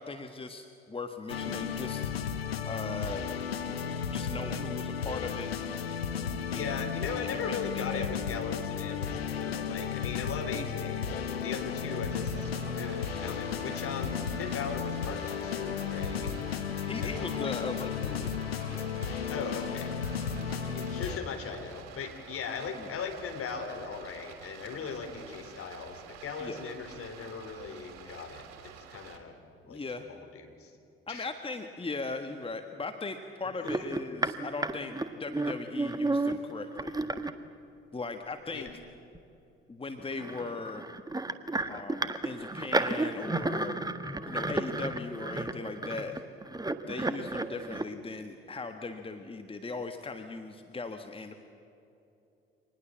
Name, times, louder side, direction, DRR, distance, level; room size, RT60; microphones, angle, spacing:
voice 1, 0.0-2.1 2.7-3.2 4.1-5.5 6.5-6.9 7.3-8.1 10.5-10.8 16.9-18.9 22.8-22.9 26.4-26.6 29.7-30.1 31.1-37.0 37.9-38.7 39.7-40.9 41.7-43.8 44.3-46.2 46.9-51.3, left 3 dB, 20° left, 6 dB, 1.6 m, -39 dB
sound 1, 1.3-21.2, left 7 dB, 85° left, 0.9 m, -34 dB
voice 2, 6.5-16.3 17.0-17.6 19.3-19.9 20.7-29.4 29.7-30.8 31.1-31.3 33.4-33.9 38.5-38.7, left 5 dB, 50° left, 5 dB, 3.6 m, -39 dB
Stream, 12.1-29.2, right 8 dB, 60° right, 3.1 m, -50 dB
sound 2, 33.6-37.3 38.7-38.8 39.1-39.2 40.0-47.8, right 2 dB, 15° right, 1.5 m, -32 dB
26.0 x 20.0 x 7.5 m, 2.8 s
figure-of-eight pair, 50°, 29 cm